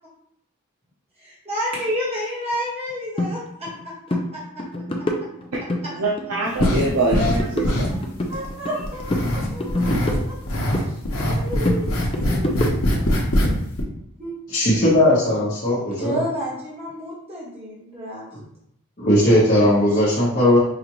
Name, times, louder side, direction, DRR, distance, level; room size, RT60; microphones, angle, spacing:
voice 1, 1.2-4.6 5.8-5.9 8.3-10.3 10.7-11.0 11.3-11.9 12.3-13.0 14.2-14.4 16.0-18.3, equal, 25° right, -7 dB, 1.3 m, -31 dB
sound 1, 3.2-3.3 3.7-3.8 4.1-4.3 4.6-5.8 6.2-6.8 7.1-8.8 9.1-10.9 11.2-13.1, left 1 dB, 25° left, 0.4 m, -26 dB
voice 2, 6.0-8.0, right 2 dB, 90° right, -4 dB, 0.6 m, -24 dB
sound 2, 6.6-7.4 7.6-8.5 8.8-10.2 10.5-13.5 13.8-13.9, left 1 dB, 70° left, 0.8 m, -22 dB
voice 3, 14.5-16.2 18.3-18.4 19.0-20.6, left 1 dB, 40° left, -9 dB, 1.0 m, -18 dB
5.0 x 2.5 x 2.9 m, 0.72 s
head